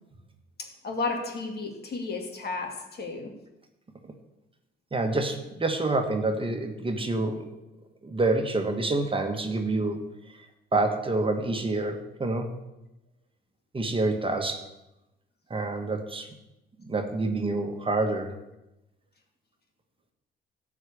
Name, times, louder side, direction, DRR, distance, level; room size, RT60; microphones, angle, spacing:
voice 1, 0.6-3.3, left 3 dB, 55° left, 2 dB, 2.5 m, -33 dB
voice 2, 4.9-7.4 8.0-10.0 10.7-12.5 13.7-14.6 15.5-16.3 16.8-18.3, right 2 dB, 25° right, 4 dB, 1.5 m, -27 dB
13.0 x 5.0 x 8.4 m, 0.96 s
cardioid pair, 90°, 20 cm